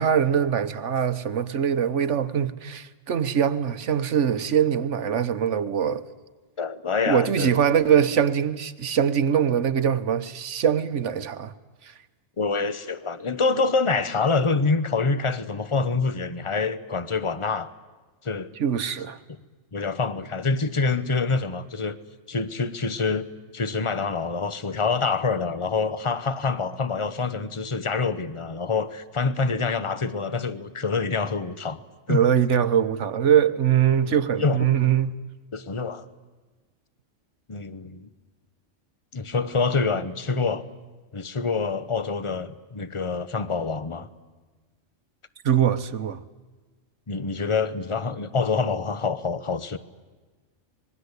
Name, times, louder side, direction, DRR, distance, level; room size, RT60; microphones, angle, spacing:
voice 1, 0.0-6.1 7.1-11.5 11.8-11.9 18.6-19.2 32.1-35.2 45.4-46.2, right 8 dB, 70° right, 1.3 m, -22 dB
voice 2, 6.6-7.5 12.4-17.7 18.2-18.5 19.7-22.0 22.3-23.3 23.5-31.8 32.1-32.2 34.1-34.6 35.5-36.1 37.5-38.1 39.1-40.6 41.1-44.1 47.1-49.8, left 4 dB, 25° left, 1.0 m, -26 dB
26.0 x 21.0 x 8.2 m
omnidirectional pair, 1.3 m